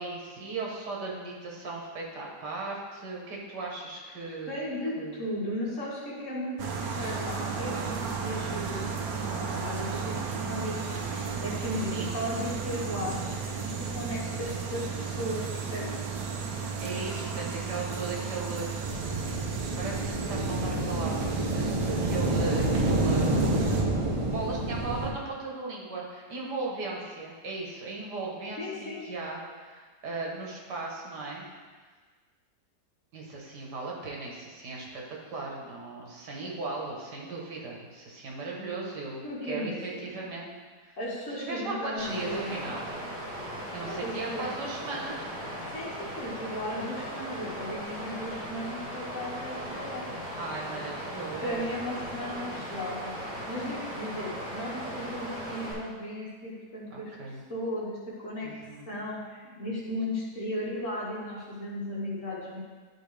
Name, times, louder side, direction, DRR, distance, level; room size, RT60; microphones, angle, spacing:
voice 1, 0.0-4.6 5.0-5.2 11.9-12.2 16.8-19.0 19.5-23.8 24.1-31.5 33.1-40.5 40.8-41.0 41.3-43.0 43.7-45.3 50.4-52.1 56.9-57.4 58.4-59.0, right 3 dB, 85° right, -2 dB, 1.9 m, -37 dB
voice 2, 4.5-13.4 13.6-16.0 28.6-29.0 39.2-40.3 41.0-42.7 43.9-44.5 45.7-50.0 51.4-57.1 57.5-58.0 58.2-62.6, left 1 dB, 50° left, -7 dB, 2.1 m, -36 dB
sound 1, 6.6-23.8, right 5 dB, 70° right, 1.2 m, -34 dB
sound 2, 18.8-25.1, right 1 dB, 30° right, 0.6 m, -28 dB
Water, 42.0-55.7, equal, 10° right, 1.9 m, -38 dB
11.5 x 4.3 x 3.4 m, 1.4 s
omnidirectional pair, 1.8 m